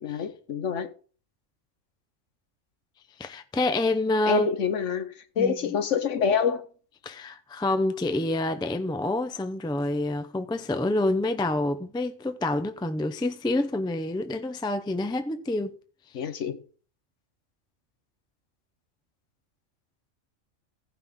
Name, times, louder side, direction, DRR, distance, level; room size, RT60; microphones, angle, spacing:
voice 1, 0.0-0.9 4.3-6.6 16.1-16.6, left 7 dB, 65° left, 1.3 m, -27 dB
voice 2, 3.2-4.5 5.4-5.6 7.0-15.8, left 2 dB, 5° left, 0.4 m, -27 dB
16.0 x 5.7 x 3.6 m
omnidirectional pair, 1.3 m